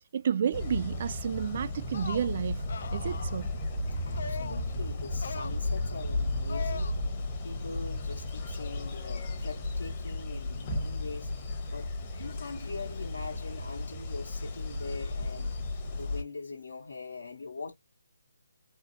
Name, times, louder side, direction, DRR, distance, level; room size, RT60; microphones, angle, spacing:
voice 1, 0.1-3.5, right 8 dB, 45° right, 0.3 m, -31 dB
sound 1, 0.5-16.2, left 2 dB, 30° left, 1.1 m, -34 dB
sound 2, 1.8-2.3 2.7-3.4 4.2-4.7 5.1-5.6 6.5-6.9, left 5 dB, 55° left, 0.5 m, -40 dB
voice 2, 4.0-15.6 16.0-17.7, left 4 dB, 70° left, 1.4 m, -42 dB
4.5 x 2.1 x 2.7 m
figure-of-eight pair, 150°, 0 cm